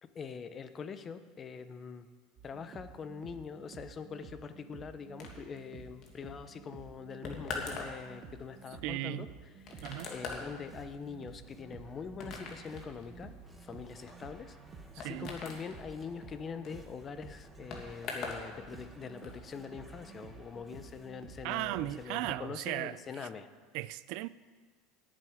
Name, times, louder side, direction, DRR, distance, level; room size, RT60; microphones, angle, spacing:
voice 1, 0.0-2.1 2.4-9.3 9.6-13.3 13.6-14.6 15.0-23.5, left 6 dB, 25° left, 0.7 m, -44 dB
sound 1, 2.4-22.3, right 6 dB, 35° right, 1.2 m, -52 dB
sound 2, 5.2-18.5 18.7-19.4, left 4 dB, 45° left, 2.1 m, -44 dB
voice 2, 8.8-9.3 9.8-10.1 15.0-15.3 21.4-23.0 23.7-24.3, right 16 dB, 60° right, 0.4 m, -36 dB
sound 3, 9.7-22.1, right 1 dB, 10° right, 1.0 m, -58 dB
18.5 x 7.6 x 5.0 m
supercardioid pair, 145°, 0 cm